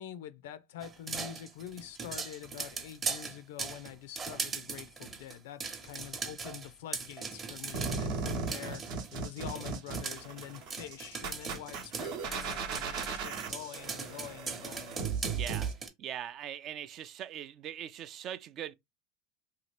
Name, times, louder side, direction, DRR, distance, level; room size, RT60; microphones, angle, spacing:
voice 1, 0.0-15.0, left 11 dB, 75° left, 0.4 m, -46 dB
sound 1, 0.8-9.1 9.5-15.9, right 5 dB, 30° right, 0.8 m, -40 dB
sound 2, 7.7-15.7, right 5 dB, 65° right, 0.8 m, -37 dB
voice 2, 15.3-15.7 16.0-18.7, right 10 dB, 45° right, 0.3 m, -41 dB
2.7 x 2.4 x 3.2 m
hypercardioid pair, 95°, 0 cm